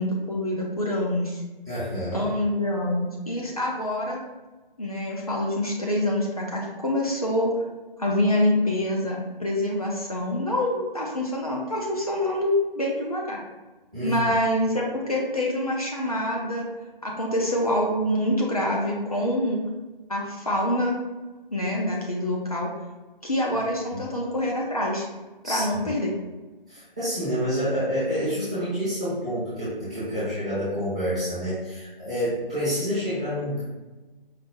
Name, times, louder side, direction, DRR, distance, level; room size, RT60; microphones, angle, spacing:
voice 1, 0.0-1.4 2.1-4.2 4.8-7.5 8.0-13.4 14.0-16.7 17.0-19.6 20.1-21.0 21.5-22.7 23.2-25.1 25.4-26.1, left 1 dB, 40° left, -3 dB, 0.6 m, -26 dB
voice 2, 1.7-2.3 13.9-14.3 23.9-24.0 25.4-25.9 26.7-33.6, equal, 5° right, -16 dB, 0.8 m, -28 dB
5.0 x 2.1 x 4.3 m, 1.2 s
figure-of-eight pair, 160°, 29 cm